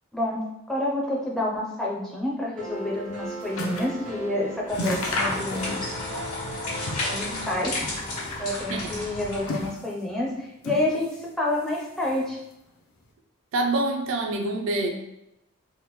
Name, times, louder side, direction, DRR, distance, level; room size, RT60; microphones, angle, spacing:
voice 1, 0.1-6.0 7.1-7.9 8.4-12.4, left 1 dB, ahead, -4 dB, 0.4 m, -29 dB
sound 1, 2.6-8.5, equal, 80° right, 1.0 m, -38 dB
sound 2, 2.8-4.0 4.3-4.4 4.7-6.0 6.3-7.2 7.6-8.5 9.1-10.1 10.6-11.3 11.6-12.4 13.0-13.1, left 1 dB, 70° left, 0.5 m, -33 dB
sound 3, 4.7-9.7, left 2 dB, 90° left, 1.4 m, -33 dB
voice 2, 13.5-14.9, right 2 dB, 60° right, 3 dB, 0.4 m, -26 dB
3.5 x 2.1 x 3.0 m, 0.87 s
head